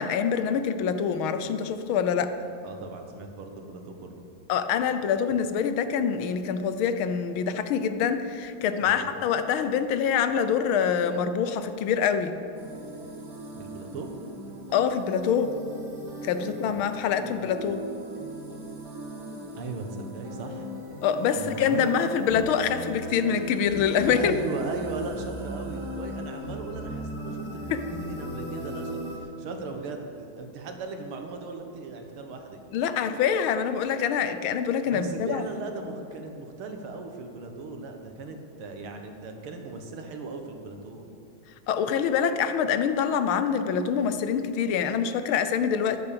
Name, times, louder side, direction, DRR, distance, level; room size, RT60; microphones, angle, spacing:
voice 1, 0.0-2.3 4.5-12.4 14.7-15.5 16.2-17.8 21.0-24.3 27.7-27.8 32.7-35.4 41.7-46.0, left 7 dB, 75° left, 10 dB, 1.6 m, -25 dB
voice 2, 2.6-4.2 8.8-9.1 13.5-14.1 16.7-16.9 17.2-17.3 19.6-20.7 21.3-21.9 24.1-32.6 34.9-41.1, right 3 dB, 85° right, 4 dB, 2.2 m, -38 dB
sound 1, 12.6-29.2, right 1 dB, 50° right, 2.7 m, -38 dB
12.5 x 10.5 x 6.9 m, 2.5 s
omnidirectional pair, 2.3 m